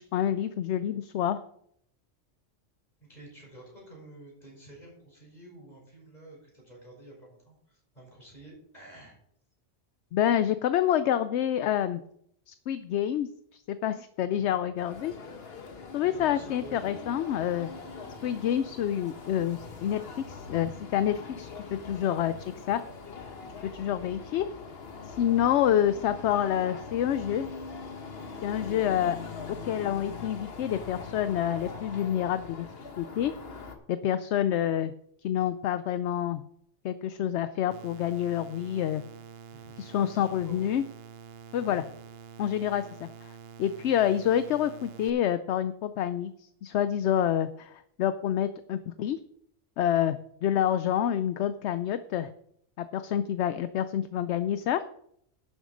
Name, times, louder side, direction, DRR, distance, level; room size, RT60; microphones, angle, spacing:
voice 1, 0.0-1.4 10.1-12.0 12.5-13.3 13.7-15.1 15.9-17.7 18.2-20.0 20.3-22.8 23.6-24.5 25.1-27.5 28.4-29.2 29.6-32.7 33.0-33.3 33.9-34.9 35.2-36.4 36.8-39.0 39.8-40.8 41.5-41.8 42.4-43.3 43.6-49.2 49.8-52.3 52.8-54.8, left 10 dB, 70° left, 12 dB, 0.8 m, -28 dB
voice 2, 3.0-9.2 14.2-14.6 16.0-17.0 17.8-18.0 25.3-25.5 39.5-39.8 40.1-40.7 41.6-41.8, right 2 dB, 35° left, -3 dB, 5.4 m, -50 dB
sound 1, 14.8-33.8, left 5 dB, 55° left, 1.5 m, -42 dB
sound 2, 37.7-45.1, right 6 dB, 60° right, 0.8 m, -47 dB
11.5 x 7.3 x 5.1 m, 0.69 s
omnidirectional pair, 1.2 m